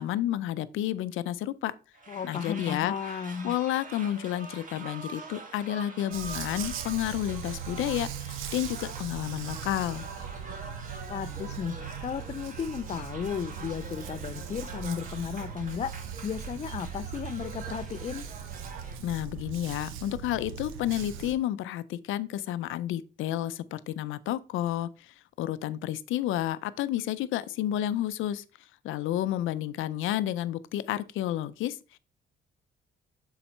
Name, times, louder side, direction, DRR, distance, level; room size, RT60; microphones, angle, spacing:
voice 1, 0.0-1.7 2.2-2.9 3.4-10.1 19.0-28.4 28.8-32.0, left 12 dB, 85° left, 0.5 m, -31 dB
sound 1, 1.9-19.0, right 3 dB, 40° right, 1.6 m, -45 dB
voice 2, 2.1-3.5 11.1-16.0 16.2-18.3, left 7 dB, 35° left, 0.4 m, -34 dB
Dog, 6.1-21.3, right 8 dB, 90° right, 0.8 m, -39 dB
7.0 x 4.0 x 4.3 m
cardioid pair, 90°, 20 cm